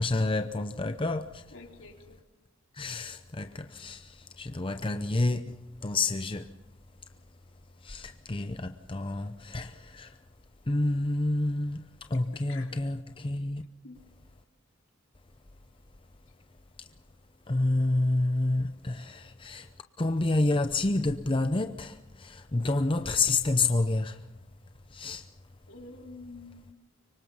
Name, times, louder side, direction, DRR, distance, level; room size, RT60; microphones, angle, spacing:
voice 1, 0.0-1.4 2.7-6.5 7.8-10.2 10.7-13.6 17.5-19.7 20.0-24.3 24.9-25.3, left 2 dB, 25° left, 0.7 m, -29 dB
voice 2, 1.5-2.2 12.5-12.7 13.8-14.0 22.7-22.8 25.7-26.8, left 3 dB, 65° left, 3.8 m, -47 dB
25.5 x 24.0 x 5.6 m
head